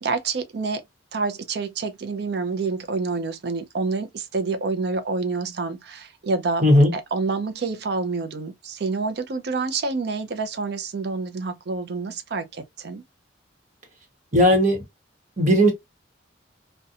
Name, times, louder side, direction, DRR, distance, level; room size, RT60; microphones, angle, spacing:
voice 1, 0.0-0.8 1.1-13.0, right 4 dB, 55° right, 0.4 m, -28 dB
voice 2, 14.3-14.8 15.4-15.7, equal, 40° right, 1.0 m, -16 dB
2.7 x 2.2 x 2.3 m
head